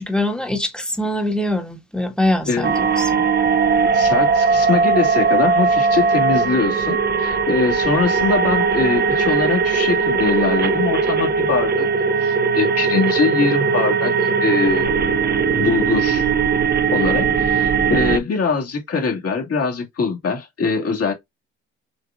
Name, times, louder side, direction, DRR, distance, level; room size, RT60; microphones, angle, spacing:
voice 1, 0.0-3.3, left 1 dB, 5° left, 1.5 m, -23 dB
sound 1, 2.6-18.2, right 5 dB, 35° right, 0.6 m, -19 dB
voice 2, 3.9-11.9 12.2-14.9 15.5-16.3 16.9-21.1, left 4 dB, 50° left, 2.4 m, -22 dB
6.3 x 3.0 x 2.5 m
cardioid pair, 90°, 30 cm